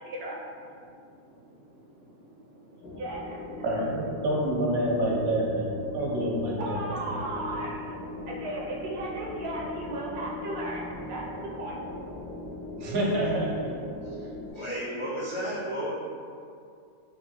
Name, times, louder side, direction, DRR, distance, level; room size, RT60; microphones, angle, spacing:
voice 1, 0.0-3.9 5.8-6.0 6.6-12.2, right 1 dB, 65° right, -3 dB, 0.6 m, -37 dB
sound 1, 2.8-14.5, left 2 dB, 85° left, 1.2 m, -39 dB
voice 2, 3.6-6.8 12.8-13.7 14.2-14.3, right 1 dB, 85° right, -4 dB, 1.2 m, -27 dB
voice 3, 14.5-15.9, equal, 55° left, -10 dB, 0.3 m, -32 dB
3.4 x 2.5 x 2.8 m, 2.4 s
omnidirectional pair, 1.5 m